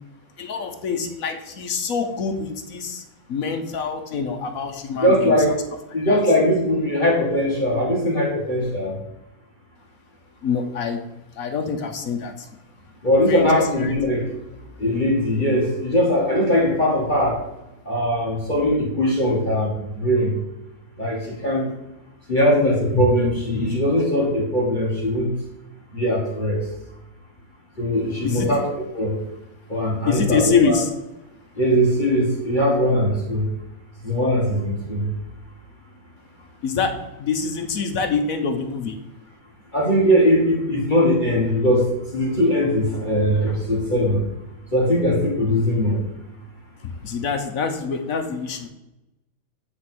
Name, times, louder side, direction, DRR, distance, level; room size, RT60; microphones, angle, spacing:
voice 1, 0.4-3.0 3.3-5.6 6.1-6.2 10.4-11.0 11.3-12.5 13.3-13.9 28.2-28.5 30.1-30.9 36.6-39.0 46.8-48.7, left 5 dB, 55° left, 5 dB, 1.0 m, -25 dB
voice 2, 5.0-5.5 5.9-9.0 13.0-14.2 14.8-17.4 17.8-20.4 21.0-21.7 22.3-25.3 25.9-26.6 27.8-28.7 28.9-29.2 29.7-30.8 31.6-33.5 34.0-35.1 39.7-44.2 44.7-46.0, equal, 25° left, -3 dB, 1.6 m, -20 dB
9.3 x 3.6 x 6.0 m, 0.95 s
omnidirectional pair, 2.1 m